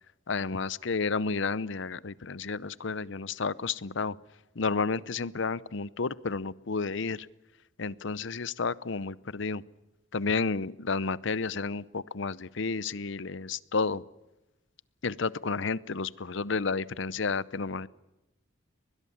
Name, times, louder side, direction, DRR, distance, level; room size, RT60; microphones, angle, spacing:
voice 1, 0.3-4.2 4.6-7.3 7.8-9.6 10.1-14.0 15.0-17.9, left 4 dB, 65° left, 19 dB, 0.7 m, -31 dB
23.5 x 21.0 x 7.3 m, 0.98 s
head